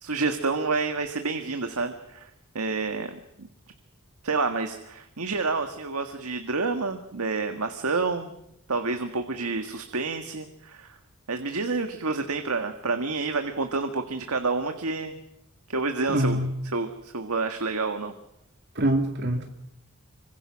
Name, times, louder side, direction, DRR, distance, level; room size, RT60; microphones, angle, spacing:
voice 1, 0.0-2.3 2.5-3.5 4.2-8.3 8.7-10.9 11.3-15.1 15.7-16.4 16.7-18.1, right 3 dB, 85° right, 7 dB, 1.7 m, -29 dB
voice 2, 16.1-16.5 18.8-19.5, right 1 dB, 50° right, 4 dB, 2.1 m, -24 dB
26.0 x 24.5 x 6.3 m, 0.81 s
head